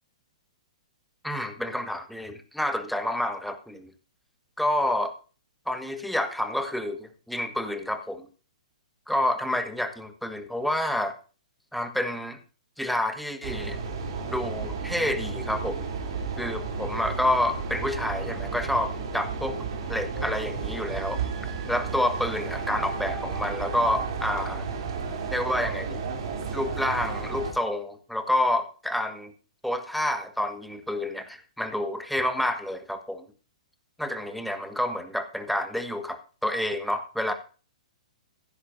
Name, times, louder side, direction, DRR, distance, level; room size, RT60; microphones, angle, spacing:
voice 1, 1.2-3.9 4.6-5.1 5.7-8.3 9.1-11.1 11.7-12.4 12.8-13.8 14.3-15.9 16.4-19.6 19.9-21.2 21.7-24.7 25.3-26.0 26.5-29.3 29.6-33.2 34.0-37.3, left 1 dB, ahead, 7 dB, 1.6 m, -29 dB
sound 1, 13.4-27.5, right 5 dB, 50° right, 3.4 m, -33 dB
16.0 x 13.5 x 2.7 m, 0.36 s
figure-of-eight pair, 115°, 4 cm